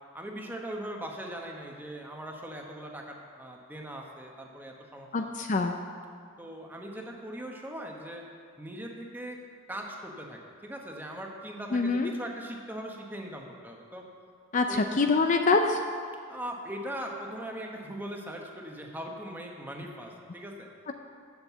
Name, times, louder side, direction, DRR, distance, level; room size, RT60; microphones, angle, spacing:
voice 1, 0.1-5.3 6.4-8.2 8.6-9.4 9.7-14.0 14.7-14.8 16.3-20.7, right 1 dB, 10° right, 0 dB, 1.1 m, -40 dB
voice 2, 5.1-5.7 11.7-12.1 14.5-14.7 15.0-15.8 20.9-21.0, left 4 dB, 40° left, 5 dB, 0.5 m, -24 dB
7.6 x 7.2 x 8.0 m, 2.2 s
head